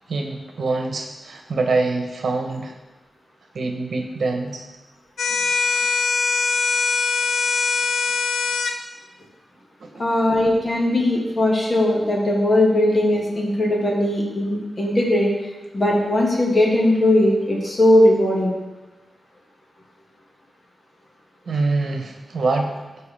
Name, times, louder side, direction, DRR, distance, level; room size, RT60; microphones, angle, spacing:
voice 1, 0.1-2.8 3.5-4.6 5.3-5.8 9.8-10.2 21.5-22.8, right 3 dB, 65° right, 4 dB, 1.1 m, -25 dB
sound 1, 5.2-8.8, left 4 dB, 85° left, 0.6 m, -22 dB
voice 2, 10.0-15.3 15.7-18.5, left 1 dB, 35° left, -2 dB, 1.8 m, -19 dB
12.5 x 4.7 x 3.5 m, 1.1 s
wide cardioid pair, 150°, 0 cm